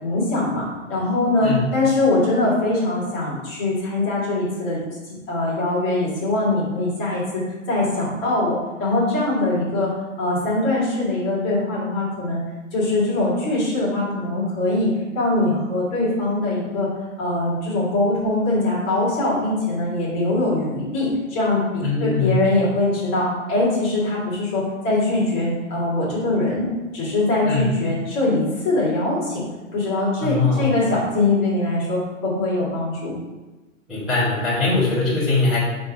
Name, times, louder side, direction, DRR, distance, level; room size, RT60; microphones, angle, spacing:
voice 1, 0.0-4.8 5.3-7.4 7.7-9.9 10.2-12.4 12.7-14.9 15.1-16.9 17.2-29.4 29.7-33.1, left 2 dB, 20° left, -7 dB, 1.9 m, -22 dB
voice 2, 21.8-22.4 27.4-27.7 30.2-30.7 33.9-35.6, left 3 dB, ahead, -18 dB, 1.3 m, -21 dB
5.7 x 3.8 x 5.1 m, 1.2 s
hypercardioid pair, 175°, 40 cm